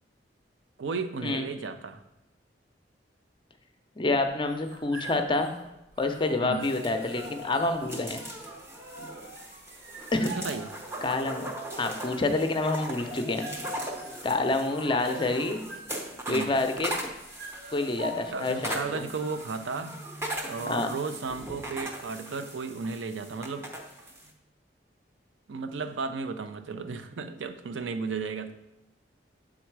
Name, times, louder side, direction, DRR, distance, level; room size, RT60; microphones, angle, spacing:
voice 1, 0.8-2.0 6.4-6.7 10.2-10.7 16.3-16.6 18.3-20.0 20.4-23.7 25.5-28.5, right 4 dB, 90° right, 9 dB, 0.5 m, -34 dB
voice 2, 4.0-5.5 6.0-8.2 10.1-10.3 11.0-11.5 11.8-13.5 14.2-15.6 16.3-16.9 17.7-19.0 20.7-20.9, left 2 dB, 25° left, 6 dB, 0.5 m, -27 dB
sound 1, 4.3-19.2, right 2 dB, 60° right, 1.2 m, -46 dB
sound 2, 6.6-24.3, right 1 dB, 15° right, 0.7 m, -39 dB
7.2 x 3.7 x 4.6 m, 0.91 s
head